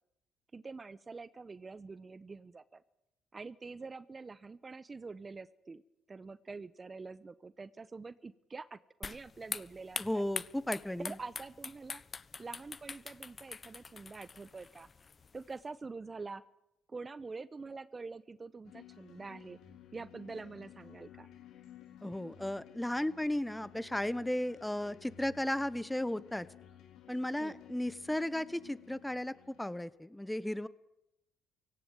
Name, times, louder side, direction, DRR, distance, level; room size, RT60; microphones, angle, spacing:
voice 1, 0.5-2.8 3.3-5.8 6.1-10.2 11.0-12.0 12.4-14.9 15.3-16.4 16.9-19.6 19.9-21.3 27.4-27.6, right 4 dB, 30° right, 17 dB, 0.9 m, -46 dB
sound 1, 9.0-15.6, left 5 dB, 35° left, 1.1 m, -44 dB
voice 2, 10.0-11.2 22.0-26.5 27.1-30.7, left 1 dB, 5° left, 17 dB, 1.0 m, -35 dB
sound 2, 18.7-29.8, left 10 dB, 70° left, 3.1 m, -55 dB
17.5 x 16.5 x 9.0 m, 0.85 s
supercardioid pair, 70°, 0 cm